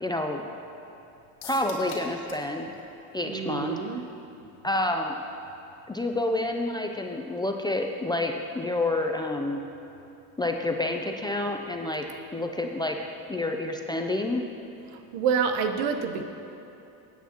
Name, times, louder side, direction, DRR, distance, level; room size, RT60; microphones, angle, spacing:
voice 1, 0.0-0.5 1.4-2.7 3.1-3.8 4.6-5.1 5.9-9.6 10.4-12.0 12.3-13.0 13.3-14.4, left 2 dB, 10° left, 3 dB, 0.3 m, -28 dB
sound 1, 1.4-2.5 2.8-2.9 3.2-3.3, left 5 dB, 60° left, 2.2 m, -43 dB
voice 2, 3.2-4.0 14.9-16.2, right 6 dB, 90° right, 7 dB, 1.0 m, -27 dB
16.5 x 9.3 x 2.9 m, 2.9 s
cardioid pair, 125°, 42 cm